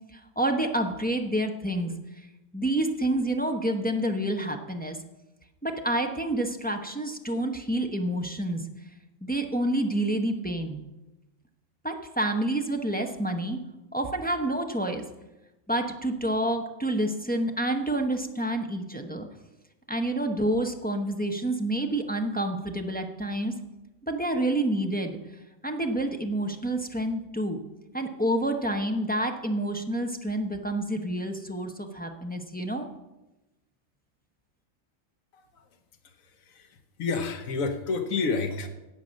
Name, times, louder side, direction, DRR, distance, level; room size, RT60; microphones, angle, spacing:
voice 1, 0.1-1.9 2.5-5.0 5.6-8.6 9.2-10.8 11.8-13.6 13.9-15.0 15.7-19.3 19.9-23.5 24.0-25.2 25.6-27.6 27.9-32.9, right 1 dB, 10° left, 3 dB, 0.8 m, -28 dB
voice 2, 35.3-35.6 36.5-38.7, left 4 dB, 80° left, 6 dB, 1.5 m, -30 dB
17.0 x 5.8 x 6.4 m, 1.0 s
omnidirectional pair, 1.4 m